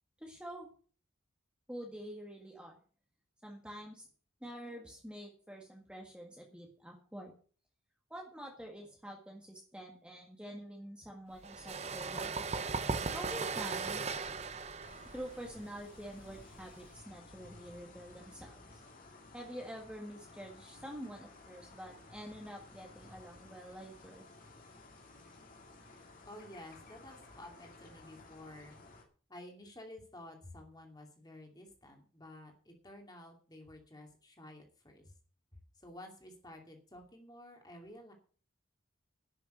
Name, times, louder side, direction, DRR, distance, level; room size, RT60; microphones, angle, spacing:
voice 1, 0.2-0.7 1.7-2.8 3.4-4.0 4.4-7.3 8.1-12.3 13.1-14.1 15.1-18.6 19.3-24.2, equal, 5° right, 0 dB, 1.7 m, -47 dB
sound 1, 11.4-16.9, right 4 dB, 30° right, 0.7 m, -38 dB
sound 2, 14.8-29.0, left 2 dB, 40° left, 2.6 m, -56 dB
voice 2, 26.2-28.8 29.3-35.1 35.8-38.1, left 1 dB, 20° left, 2 dB, 2.6 m, -52 dB
11.0 x 7.0 x 7.8 m, 0.41 s
head